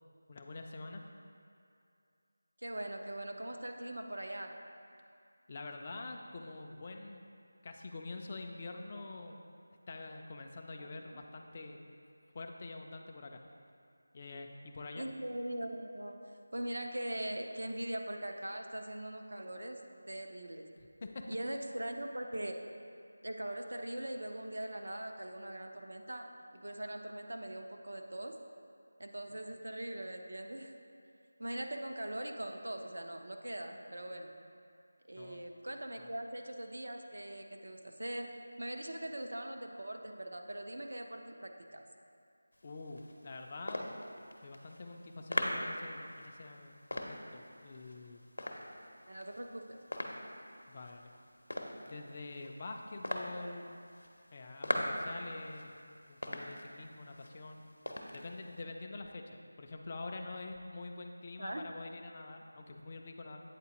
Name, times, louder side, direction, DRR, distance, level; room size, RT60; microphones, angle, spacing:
voice 1, 0.3-1.0 5.5-7.2 7.6-9.4 9.9-11.9 12.3-13.4 14.1-15.1 20.8-21.3 29.3-29.4 35.1-35.5 36.0-36.1 42.6-43.9 44.4-48.2 50.7-51.1 51.9-53.8 54.3-55.8 56.1-57.7 58.1-63.4, left 3 dB, 25° left, 3 dB, 0.3 m, -46 dB
voice 2, 2.6-4.6 10.8-11.2 15.0-16.2 16.5-19.8 20.1-20.7 21.3-22.6 23.2-26.3 26.5-28.4 29.0-30.7 31.4-34.3 35.1-41.8 49.1-49.8 61.4-61.6, right 1 dB, 80° right, 4 dB, 0.6 m, -41 dB
sound 1, 42.5-58.6, left 1 dB, 85° left, 0.6 m, -42 dB
8.1 x 4.0 x 2.9 m, 2.4 s
figure-of-eight pair, 175°, 0 cm